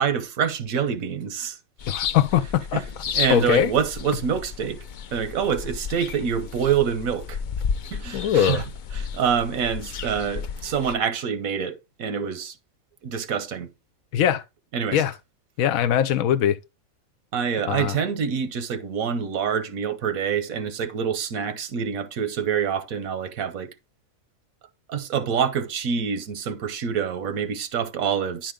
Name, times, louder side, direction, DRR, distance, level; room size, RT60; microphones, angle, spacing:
voice 1, 0.0-1.6 2.7-2.8 3.1-4.8 5.1-7.4 7.9-8.6 8.9-12.5 13.0-13.7 14.7-15.0 17.3-23.7 24.9-28.5, right 7 dB, 90° right, 1.3 m, -26 dB
sound 1, 1.8-10.9, left 6 dB, 65° left, 0.4 m, -33 dB
voice 2, 1.9-2.8 3.3-3.7 8.1-8.6 14.1-14.4 14.9-15.1 15.6-16.6 17.7-17.9, left 9 dB, 90° left, 1.2 m, -21 dB
10.5 x 5.0 x 3.6 m
omnidirectional pair, 1.4 m